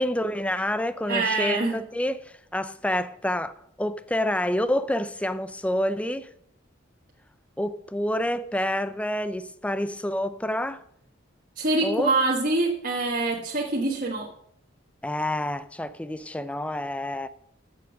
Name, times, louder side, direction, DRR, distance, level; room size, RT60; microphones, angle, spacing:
voice 1, 0.0-3.5 3.8-6.3 7.6-10.8 11.8-12.1 15.0-17.3, left 1 dB, 5° left, 0.5 m, -28 dB
voice 2, 1.1-1.7 11.6-14.3, right 2 dB, 45° right, 1.4 m, -25 dB
14.0 x 7.0 x 6.2 m
head